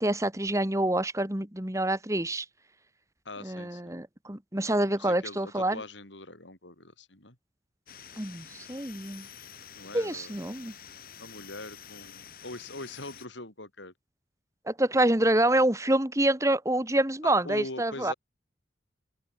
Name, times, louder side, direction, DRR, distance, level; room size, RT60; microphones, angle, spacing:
voice 1, 0.0-2.5 3.4-5.8 8.2-9.3 9.9-10.7 14.7-18.1, right 1 dB, 15° right, 1.8 m, -27 dB
voice 2, 3.2-4.0 4.9-7.4 9.8-10.4 11.2-13.9 17.2-18.1, left 2 dB, 80° left, 7.7 m, -42 dB
sound 1, 7.9-13.3, left 8 dB, 50° left, 7.2 m, -48 dB
open air
head